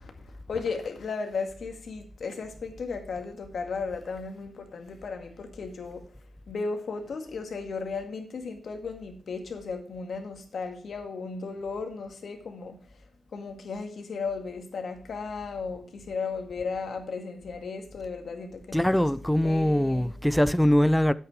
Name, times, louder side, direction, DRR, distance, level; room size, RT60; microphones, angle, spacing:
voice 1, 0.0-6.1 6.5-13.0 13.3-20.1, left 4 dB, 70° left, 2.0 m, -35 dB
voice 2, 18.7-21.1, left 1 dB, 5° left, 0.5 m, -22 dB
9.1 x 8.3 x 4.9 m
cardioid pair, 50°, 0 cm